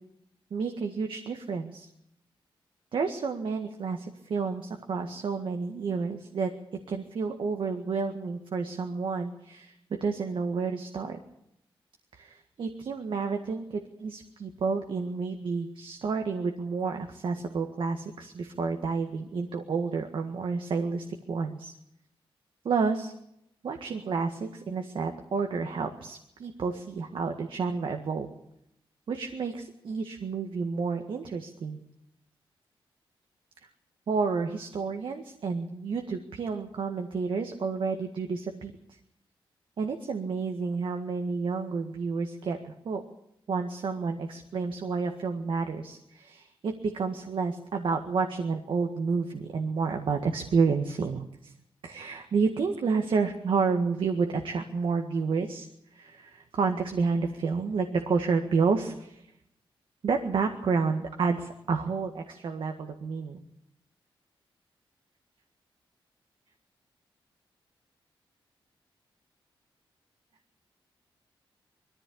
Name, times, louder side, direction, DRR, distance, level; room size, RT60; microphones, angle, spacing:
voice 1, 0.5-1.9 2.9-6.5 6.9-9.7 10.0-11.2 12.1-21.7 22.6-23.1 23.6-28.3 29.1-31.8 33.6-33.7 34.1-39.0 39.8-43.0 43.5-51.5 51.8-55.7 55.9-59.2 60.0-63.4, right 4 dB, 70° right, 4 dB, 1.8 m, -30 dB
21.5 x 14.5 x 8.6 m, 0.78 s
wide cardioid pair, 110°, 9 cm